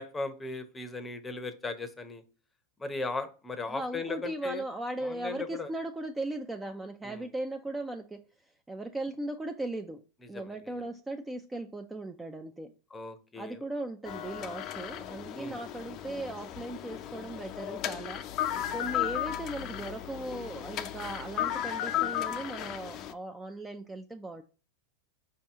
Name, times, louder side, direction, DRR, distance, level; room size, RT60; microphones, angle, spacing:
voice 1, 0.0-2.2 2.8-4.6 5.0-5.7 7.0-7.3 10.3-10.6 12.9-13.6 15.4-15.6, left 3 dB, 15° left, 10 dB, 0.7 m, -37 dB
voice 2, 3.7-8.2 8.7-10.0 10.3-12.7 13.4-18.2 18.7-24.4, right 2 dB, 10° right, 6 dB, 0.4 m, -38 dB
sound 1, 14.0-23.1, left 12 dB, 45° left, 0.5 m, -35 dB
5.3 x 2.8 x 3.5 m, 0.36 s
hypercardioid pair, 105°, 0 cm